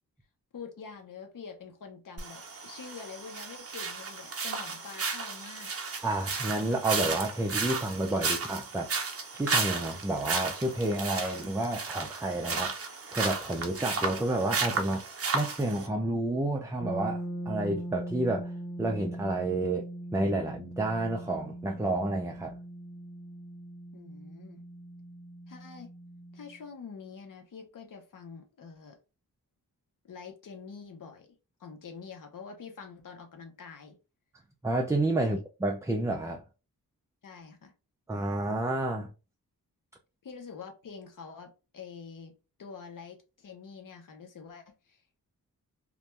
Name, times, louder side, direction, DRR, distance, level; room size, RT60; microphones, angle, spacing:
voice 1, 0.5-5.7 8.2-8.3 23.9-24.6 25.5-25.9 26.3-29.0 30.0-31.3 31.6-34.0 35.2-35.4 37.2-37.7 40.2-42.3 42.6-45.0, left 5 dB, 60° left, 0.8 m, -46 dB
sound 1, 2.2-15.9, right 4 dB, 40° right, 0.7 m, -34 dB
voice 2, 6.0-8.9 9.3-18.5 18.8-19.8 20.1-22.5 34.6-36.4 38.1-39.1, right 2 dB, 10° right, 0.3 m, -30 dB
sound 2, 16.8-26.6, right 1 dB, 35° left, 1.3 m, -40 dB
2.5 x 2.2 x 3.0 m
wide cardioid pair, 105°, 36 cm